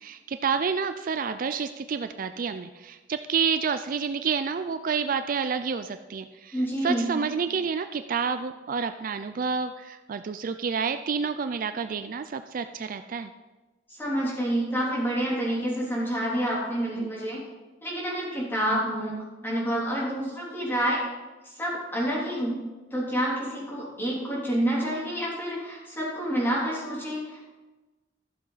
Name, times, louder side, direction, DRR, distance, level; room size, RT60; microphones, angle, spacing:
voice 1, 0.0-13.3, right 6 dB, 50° right, 10 dB, 0.4 m, -29 dB
voice 2, 6.5-7.1 13.9-17.4 17.8-19.2 19.4-21.0 21.6-22.6 22.9-27.5, right 1 dB, 10° left, -6 dB, 3.4 m, -28 dB
13.5 x 7.4 x 4.0 m, 1.2 s
head